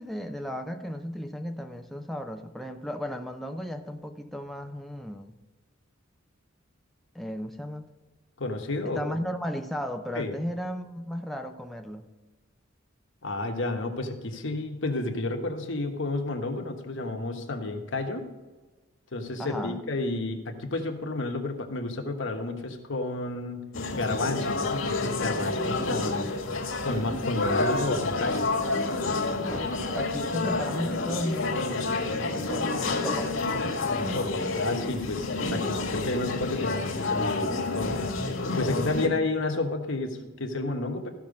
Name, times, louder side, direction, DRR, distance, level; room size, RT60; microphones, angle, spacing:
voice 1, 0.0-5.4 7.1-7.9 8.8-12.1 19.4-19.8 29.5-33.4 39.0-39.3, equal, ahead, 4 dB, 0.6 m, -35 dB
voice 2, 8.4-9.0 10.1-10.4 13.2-18.3 19.1-23.6 23.9-26.3 26.8-28.5 33.9-38.1 38.5-41.1, left 2 dB, 70° left, 3 dB, 1.3 m, -31 dB
sound 1, 23.7-39.1, left 3 dB, 85° left, 1.7 m, -29 dB
14.0 x 5.9 x 5.2 m, 1.2 s
head